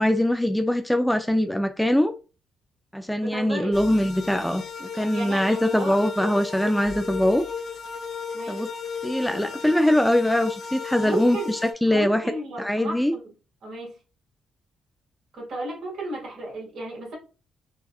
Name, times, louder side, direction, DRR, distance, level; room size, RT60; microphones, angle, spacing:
voice 1, 0.0-2.1 2.9-7.4 8.5-8.7 9.0-12.2 12.6-13.1, left 1 dB, 5° left, 0.3 m, -22 dB
voice 2, 3.2-3.8 5.1-6.0 8.3-8.6 11.0-11.5 11.9-13.2 13.6-14.0 15.3-17.2, right 2 dB, 65° right, 1.8 m, -34 dB
sound 1, 3.7-11.7, left 5 dB, 60° left, 0.7 m, -35 dB
4.2 x 2.3 x 2.3 m
cardioid pair, 90°, 0 cm